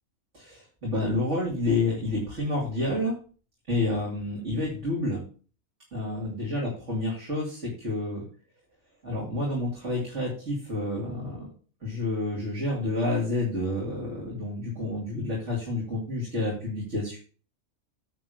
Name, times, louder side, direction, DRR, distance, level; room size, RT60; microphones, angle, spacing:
voice 1, 0.3-3.2 3.7-5.2 5.9-8.2 9.0-11.5 11.8-17.2, left 2 dB, 60° right, -5 dB, 3.2 m, -29 dB
9.7 x 3.8 x 6.5 m, 0.39 s
omnidirectional pair, 1.4 m